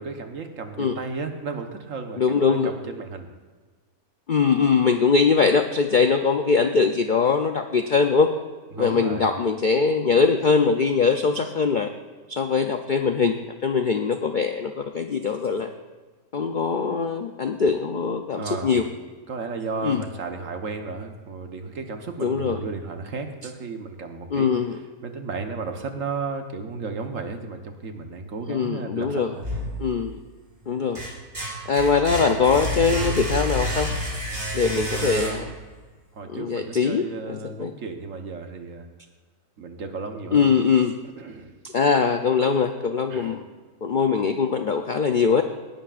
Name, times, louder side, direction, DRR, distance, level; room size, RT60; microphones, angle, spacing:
voice 1, 0.0-3.3 8.7-9.3 18.3-18.9 19.3-24.5 25.0-29.5 34.9-35.5 36.1-38.8 39.6-40.5 41.2-41.5 43.1-43.4, right 4 dB, 60° right, 5 dB, 1.4 m, -33 dB
voice 2, 2.2-2.7 4.3-8.3 8.8-11.9 12.3-15.7 16.3-18.8 19.8-20.0 22.2-22.7 24.3-24.8 28.5-29.4 29.8-30.2 30.7-31.0 31.7-34.0 34.5-35.4 36.3-37.7 40.3-40.9 41.6-43.4 43.8-45.4, left 5 dB, 60° left, 6 dB, 0.5 m, -22 dB
sound 1, 29.4-30.3 30.7-35.7, equal, 35° right, 3.1 m, -29 dB
18.0 x 11.5 x 2.5 m, 1.4 s
omnidirectional pair, 1.6 m